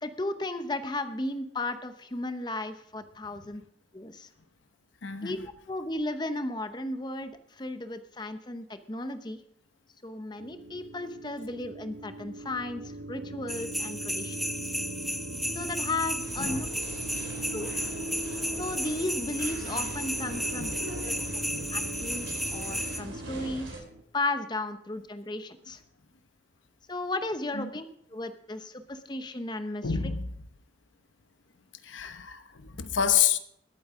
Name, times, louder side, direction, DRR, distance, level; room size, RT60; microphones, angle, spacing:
voice 1, 0.0-3.6 3.9-4.3 5.2-5.4 5.7-9.4 10.0-14.4 15.5-16.7 17.5-17.7 18.6-20.7 21.0-21.1 21.7-22.3 22.5-23.8 24.1-25.8 26.9-27.9 28.1-30.0, left 2 dB, 25° left, 0.8 m, -34 dB
voice 2, 5.0-5.4 16.4-16.7 17.3-17.8 20.6-20.8 21.4-21.7 27.5-27.7 29.8-30.3 31.8-33.4, left 8 dB, 90° left, 0.9 m, -29 dB
sound 1, 10.4-24.0, right 1 dB, 70° right, 1.0 m, -40 dB
sound 2, 13.5-23.0, equal, ahead, 0.4 m, -34 dB
sound 3, 16.2-23.8, right 1 dB, 85° right, 3.9 m, -43 dB
20.5 x 8.6 x 3.7 m
head